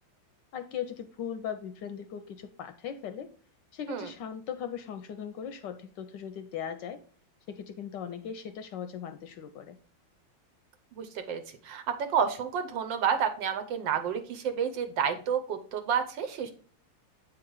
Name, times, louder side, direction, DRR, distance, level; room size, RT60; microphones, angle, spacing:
voice 1, 0.5-3.3 3.7-7.0 7.5-9.8, left 8 dB, 70° left, 9 dB, 1.1 m, -38 dB
voice 2, 10.9-16.5, right 7 dB, 70° right, 8 dB, 1.4 m, -30 dB
8.1 x 3.8 x 4.5 m, 0.44 s
omnidirectional pair, 2.2 m